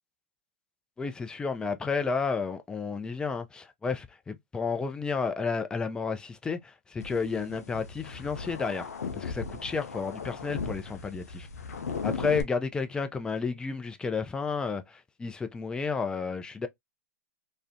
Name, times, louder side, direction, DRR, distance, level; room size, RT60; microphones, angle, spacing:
voice 1, 1.0-11.5 12.0-16.7, left 5 dB, 10° left, 0.3 m, -32 dB
sound 1, 7.0-12.4, left 5 dB, 80° left, 0.5 m, -37 dB
2.4 x 2.0 x 2.5 m
hypercardioid pair, 110°, 8 cm